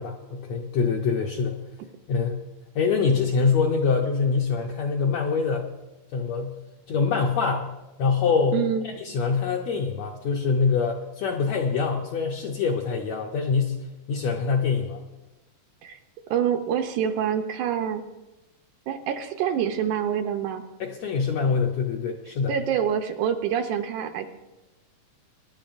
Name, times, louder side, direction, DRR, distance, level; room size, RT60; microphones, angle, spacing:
voice 1, 0.0-1.6 2.1-2.4 2.7-5.7 6.1-6.6 6.9-7.7 8.0-13.8 14.1-15.0 20.8-22.5, left 5 dB, 75° left, 1 dB, 1.6 m, -24 dB
voice 2, 8.5-8.9 15.8-16.0 16.3-18.0 18.9-20.6 22.5-24.3, right 8 dB, 80° right, 6 dB, 2.0 m, -26 dB
22.0 x 10.5 x 2.6 m, 1.0 s
omnidirectional pair, 3.9 m